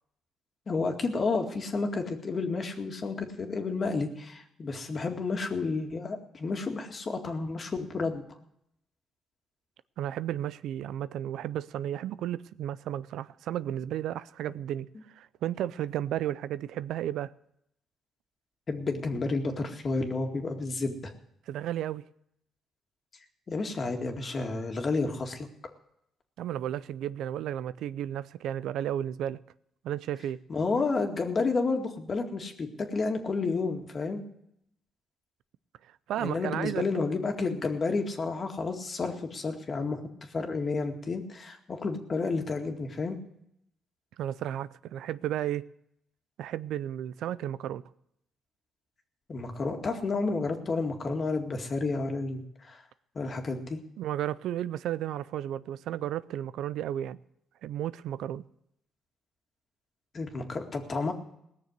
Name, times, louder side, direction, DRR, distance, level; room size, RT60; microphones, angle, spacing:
voice 1, 0.7-8.2 18.7-21.1 23.5-25.5 30.5-34.2 36.2-40.0 40.3-43.2 49.3-52.8 53.2-53.8 60.1-61.1, left 3 dB, 40° left, 2.1 m, -31 dB
voice 2, 10.0-14.9 15.1-17.3 21.5-22.0 26.4-29.4 29.8-30.4 36.1-36.8 44.2-45.7 46.4-47.8 54.0-57.2 57.6-58.4, right 11 dB, 80° right, 0.4 m, -33 dB
18.5 x 6.7 x 8.1 m
cardioid pair, 90°, 0 cm